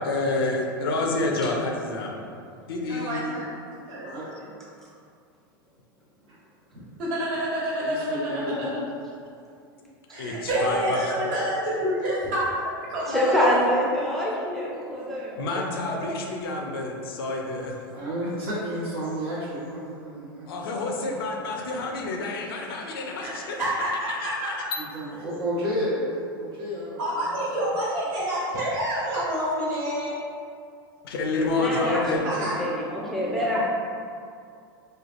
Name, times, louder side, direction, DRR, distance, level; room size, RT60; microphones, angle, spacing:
voice 1, 0.0-2.1 2.7-3.2 10.2-11.2 14.2-14.3 15.4-17.8 20.5-23.6 23.8-24.6 31.0-32.3, left 2 dB, 80° left, 0 dB, 0.5 m, -28 dB
voice 2, 2.9-3.6 3.9-4.5 6.7-8.8 10.1-13.3 23.2-24.3 27.0-30.2 32.2-32.6, equal, 60° right, -8 dB, 1.3 m, -28 dB
voice 3, 7.8-8.5 17.6-17.7 17.9-20.5 21.0-21.1 24.9-27.3 33.2-33.6, equal, 75° right, -8 dB, 1.2 m, -31 dB
voice 4, 13.1-16.0 31.6-33.6, equal, 5° left, -6 dB, 0.5 m, -26 dB
3.1 x 2.3 x 2.5 m, 2.4 s
hypercardioid pair, 115°, 12 cm